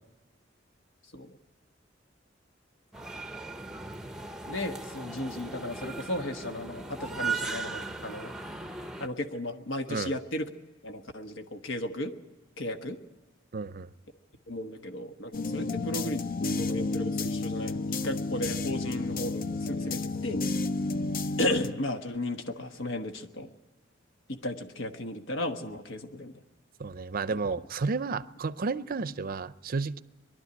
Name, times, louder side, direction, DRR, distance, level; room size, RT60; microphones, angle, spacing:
sound 1, 2.9-9.1, right 3 dB, 5° right, 0.7 m, -37 dB
voice 1, 4.5-8.3 9.0-10.5 10.8-12.1 12.6-13.0 14.5-16.2 16.6-20.4 21.4-23.5 24.3-26.4, left 1 dB, 75° left, 1.3 m, -35 dB
voice 2, 13.5-13.9 26.8-30.0, right 4 dB, 50° right, 0.5 m, -32 dB
sound 2, 15.3-21.7, left 3 dB, 50° left, 0.5 m, -31 dB
22.0 x 12.0 x 9.6 m
head